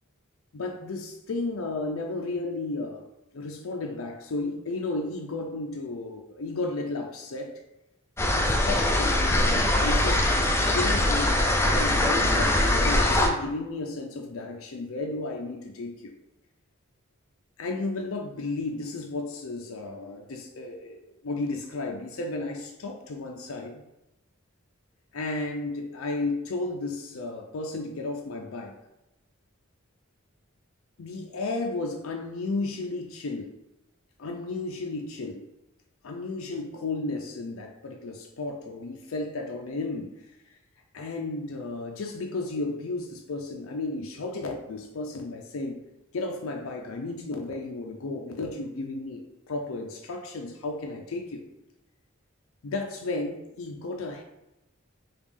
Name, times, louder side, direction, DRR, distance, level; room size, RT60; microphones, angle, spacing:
voice 1, 0.5-3.0 3.3-7.5 8.3-10.3 10.7-16.1 17.6-23.8 25.1-28.7 31.0-33.5 34.2-35.4 36.0-40.3 40.9-45.8 46.1-51.4 52.6-54.2, left 2 dB, 80° left, 2 dB, 0.5 m, -33 dB
sound 1, 8.2-13.3, left 1 dB, 10° left, 0.4 m, -22 dB
5.1 x 2.4 x 3.3 m, 0.95 s
head